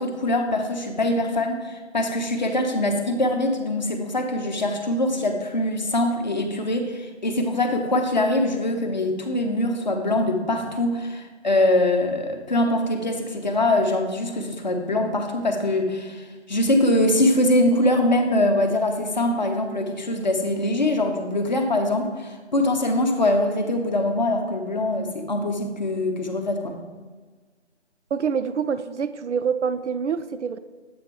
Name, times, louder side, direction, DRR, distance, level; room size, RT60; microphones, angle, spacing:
voice 1, 0.0-26.8, left 1 dB, 40° left, 4 dB, 0.8 m, -23 dB
voice 2, 28.1-30.6, right 6 dB, 75° right, 12 dB, 0.5 m, -26 dB
7.9 x 6.6 x 3.0 m, 1.4 s
figure-of-eight pair, 165°, 35 cm